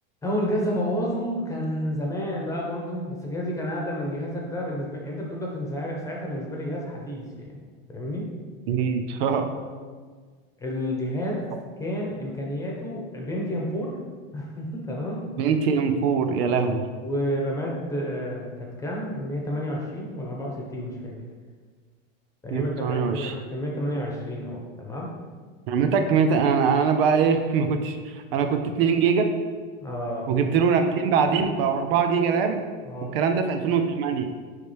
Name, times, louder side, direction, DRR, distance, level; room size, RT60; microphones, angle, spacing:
voice 1, 0.2-7.6 7.9-8.3 10.6-11.4 11.8-13.9 14.3-15.3 17.0-21.1 22.4-25.1 29.8-30.4 32.9-33.2, equal, 10° left, -2 dB, 1.1 m, -30 dB
voice 2, 8.7-9.5 15.4-16.8 22.5-23.3 25.7-29.3 30.3-32.6 33.1-34.3, right 6 dB, 70° right, 7 dB, 0.7 m, -22 dB
9.7 x 3.3 x 3.4 m, 1.5 s
supercardioid pair, 145°, 30 cm